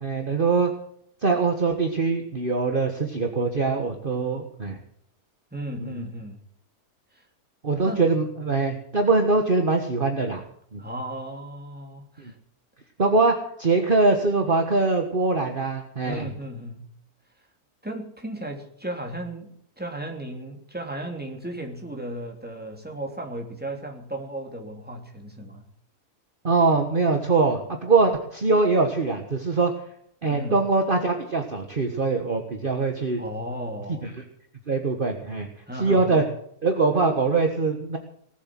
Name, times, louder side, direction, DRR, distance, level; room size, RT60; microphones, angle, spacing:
voice 1, 0.0-0.7 1.2-4.8 5.8-6.1 7.6-10.4 10.7-10.8 12.2-12.3 13.0-16.3 26.4-29.7 30.2-33.2 34.0-34.1 34.7-35.5 35.7-36.2 36.6-38.0, right 3 dB, 35° right, 4 dB, 1.6 m, -23 dB
voice 2, 5.5-6.5 7.1-7.2 7.8-8.0 10.8-12.3 16.0-16.9 17.8-25.6 30.2-30.6 33.2-34.2 35.7-36.2, right 1 dB, 5° right, 2 dB, 2.9 m, -35 dB
19.0 x 8.4 x 7.6 m, 0.69 s
omnidirectional pair, 1.6 m